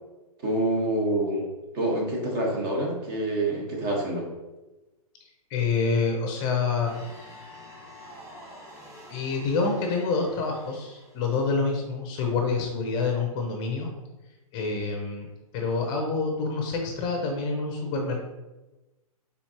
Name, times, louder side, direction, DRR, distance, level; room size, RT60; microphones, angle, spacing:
voice 1, 0.4-1.5 1.7-4.3, right 1 dB, 40° right, -1 dB, 1.4 m, -26 dB
voice 2, 5.5-6.9 9.1-13.9 14.5-15.3 15.5-18.2, left 4 dB, 25° left, 2 dB, 0.6 m, -27 dB
sound 1, 6.8-11.5, left 1 dB, 15° right, 1.5 m, -47 dB
4.3 x 4.0 x 2.9 m, 1.1 s
hypercardioid pair, 145°, 19 cm